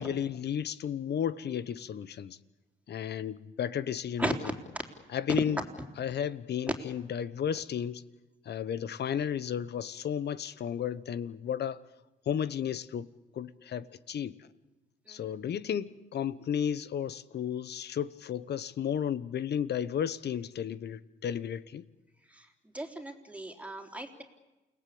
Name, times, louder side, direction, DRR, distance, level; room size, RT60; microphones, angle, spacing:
voice 1, 0.0-2.4 2.9-4.4 5.1-5.6 6.0-8.0 8.4-11.8 12.3-13.1 13.3-14.5 15.1-21.9, left 8 dB, 55° left, 1.1 m, -33 dB
voice 2, 22.7-24.2, right 1 dB, 5° right, 3.7 m, -36 dB
29.0 x 18.5 x 8.6 m
cardioid pair, 90°, 20 cm